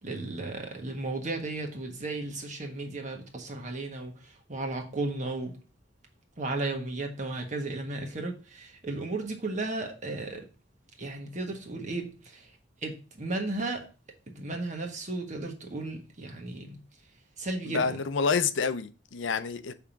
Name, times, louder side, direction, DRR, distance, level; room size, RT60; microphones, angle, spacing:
voice 1, 0.0-5.5 6.4-10.4 11.0-13.9 14.3-16.8 17.4-18.0, right 2 dB, 40° right, 1.5 m, -34 dB
voice 2, 17.7-19.7, left 5 dB, 85° left, 0.5 m, -28 dB
5.8 x 3.6 x 5.8 m
head